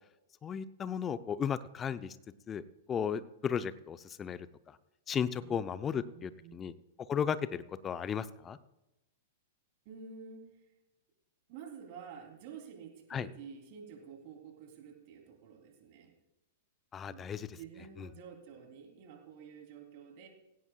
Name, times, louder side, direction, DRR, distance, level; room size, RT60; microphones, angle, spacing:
voice 1, 0.4-2.2 2.5-2.6 2.9-4.8 5.1-6.7 7.1-8.6 13.1-13.3 16.9-17.6 18.0-18.1, left 7 dB, 25° left, 14 dB, 0.7 m, -35 dB
voice 2, 5.4-6.5 9.8-10.4 11.5-16.1 17.0-20.3, right 6 dB, 45° right, 2 dB, 3.3 m, -50 dB
18.0 x 16.5 x 2.4 m, 0.97 s
figure-of-eight pair, 100°, 0 cm